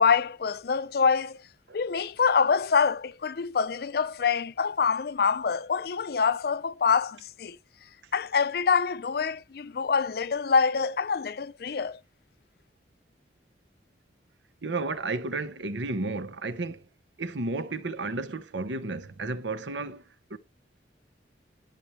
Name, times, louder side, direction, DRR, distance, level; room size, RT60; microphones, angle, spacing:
voice 1, 0.0-1.4 1.7-7.6 8.1-12.0, left 5 dB, 55° left, 0.4 m, -25 dB
voice 2, 14.6-16.8 17.2-20.0 20.3-20.4, right 3 dB, 80° right, 0.9 m, -32 dB
12.0 x 5.9 x 3.2 m
head